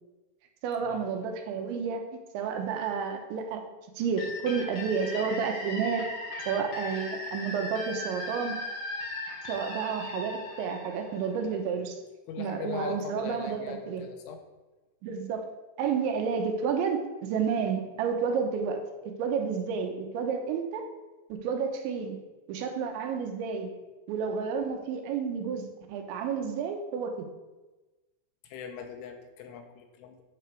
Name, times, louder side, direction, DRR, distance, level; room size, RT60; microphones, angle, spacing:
voice 1, 0.6-2.0 2.3-3.6 4.0-6.1 6.5-8.6 9.5-12.0 12.4-14.0 15.0-15.5 15.8-20.8 21.3-22.2 22.5-23.7 24.1-27.3, right 6 dB, 80° right, 4 dB, 3.2 m, -30 dB
sound 1, 4.2-11.7, left 2 dB, 55° left, 2.4 m, -38 dB
voice 2, 12.3-14.4 28.5-30.2, left 6 dB, 90° left, 4 dB, 3.5 m, -40 dB
10.5 x 4.5 x 6.5 m, 1.1 s
omnidirectional pair, 5.4 m